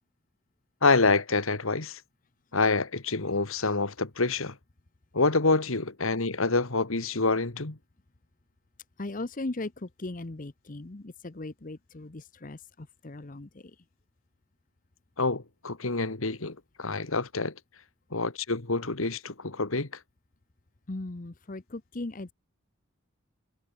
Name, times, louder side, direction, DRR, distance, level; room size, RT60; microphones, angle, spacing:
voice 1, 0.8-2.0 2.5-4.6 5.1-7.8 15.2-17.5 18.1-19.9, left 3 dB, 80° left, 2.0 m, -27 dB
voice 2, 9.0-13.6 20.9-22.3, left 2 dB, 40° left, 0.8 m, -38 dB
head